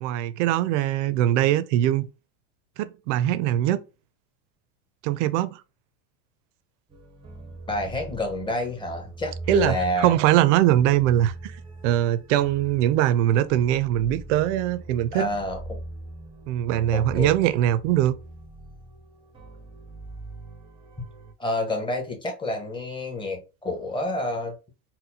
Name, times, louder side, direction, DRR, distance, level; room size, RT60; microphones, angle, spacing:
voice 1, 0.0-2.1 2.8-3.8 5.0-5.6 9.5-11.6 11.8-15.3 16.5-18.1, right 12 dB, 70° right, 0.5 m, -22 dB
sound 1, 6.9-21.3, right 2 dB, 15° right, 0.6 m, -41 dB
voice 2, 7.7-10.1 15.1-15.8 16.9-17.3 21.4-24.5, left 1 dB, 10° left, 1.0 m, -29 dB
4.1 x 2.1 x 2.7 m
supercardioid pair, 130°, 39 cm